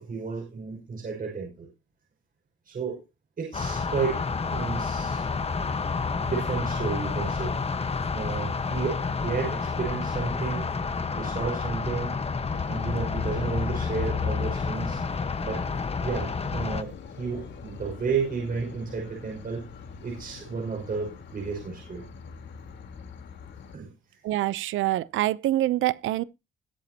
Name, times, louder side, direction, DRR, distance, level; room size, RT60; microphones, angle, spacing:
voice 1, 0.0-1.7 2.7-3.0 3.4-5.3 6.3-7.6 8.1-10.7 11.2-12.1 12.7-15.0 15.4-15.6 16.0-19.6 20.0-22.0 23.7-23.9, right 5 dB, 45° right, 5.9 m, -32 dB
sound 1, 3.5-16.8, left 4 dB, 30° left, 1.3 m, -30 dB
sound 2, 12.4-23.8, left 7 dB, 65° left, 3.9 m, -38 dB
voice 2, 24.2-26.2, right 14 dB, 80° right, 0.8 m, -25 dB
21.0 x 8.0 x 2.9 m
cardioid pair, 90°, 20 cm